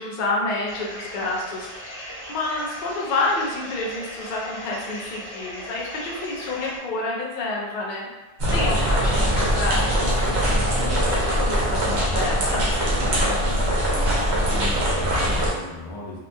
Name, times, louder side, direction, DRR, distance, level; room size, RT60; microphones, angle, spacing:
voice 1, 0.0-8.1 8.5-12.7, left 2 dB, 55° left, -3 dB, 0.6 m, -29 dB
sound 1, 0.7-6.8, equal, 25° left, 1.0 m, -38 dB
sound 2, 8.4-15.5, equal, 80° right, 1.0 m, -22 dB
voice 2, 13.4-16.2, left 1 dB, 85° left, -5 dB, 1.0 m, -36 dB
2.7 x 2.2 x 2.6 m, 1.1 s
omnidirectional pair, 1.1 m